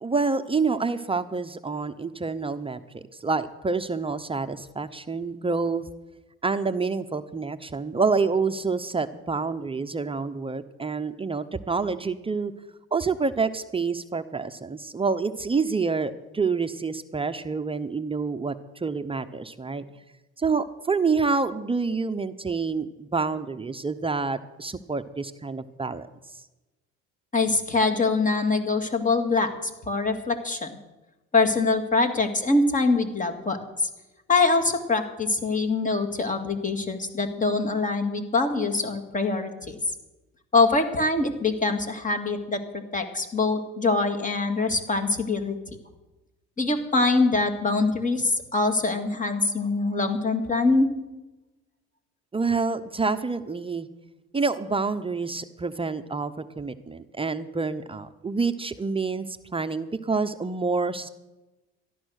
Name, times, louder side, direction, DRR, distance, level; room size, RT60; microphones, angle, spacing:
voice 1, 0.0-5.8 6.4-12.5 12.9-19.8 20.4-26.1 52.3-53.9 54.3-61.1, right 4 dB, 20° right, 9 dB, 0.7 m, -27 dB
voice 2, 27.3-30.8 31.3-33.9 34.3-39.8 40.5-42.6 42.9-45.6 46.6-50.9, left 3 dB, 25° left, 6 dB, 2.1 m, -24 dB
13.5 x 11.5 x 6.4 m, 1.1 s
supercardioid pair, 90°, 30 cm